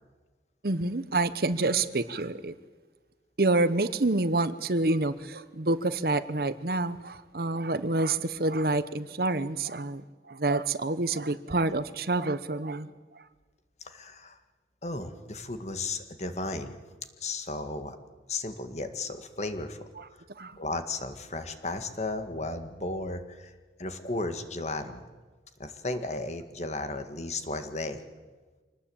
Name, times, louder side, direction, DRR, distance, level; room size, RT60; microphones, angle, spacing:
voice 1, 0.6-2.5 3.4-12.9 20.0-20.1 20.4-20.6, right 2 dB, 55° right, 0.9 m, -28 dB
voice 2, 13.9-14.4 14.8-16.8 17.2-18.0 18.3-19.9 20.6-23.5 23.8-25.0 25.6-28.0, left 2 dB, 40° left, 1.9 m, -34 dB
25.5 x 19.0 x 8.7 m
head